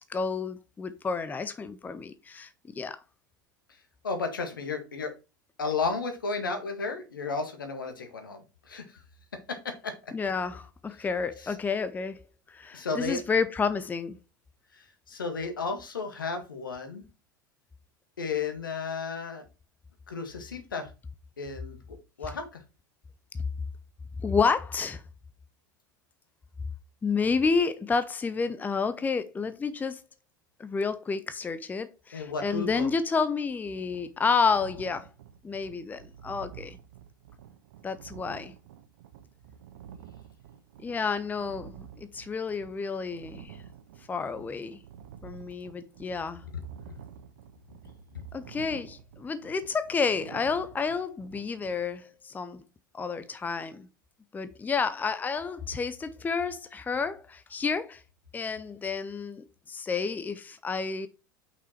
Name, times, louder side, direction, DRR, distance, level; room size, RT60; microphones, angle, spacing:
voice 1, 0.1-3.0 10.1-12.2 12.5-14.2 24.2-25.0 27.0-30.0 30.6-35.1 35.4-36.8 37.8-38.5 40.8-43.6 44.1-44.8 45.2-46.4 48.3-52.6 52.9-53.9 54.3-58.0 58.3-61.1, left 5 dB, 15° left, 0.7 m, -30 dB
voice 2, 4.0-5.1 5.6-9.0 9.5-10.1 11.4-11.5 12.7-13.2 14.7-17.0 18.2-19.4 20.1-20.9 21.4-22.6 32.1-32.9 48.1-48.2, left 4 dB, 75° left, 1.8 m, -33 dB
sound 1, 33.7-51.8, right 9 dB, 60° right, 1.3 m, -49 dB
5.9 x 5.8 x 4.4 m
figure-of-eight pair, 80°, 11 cm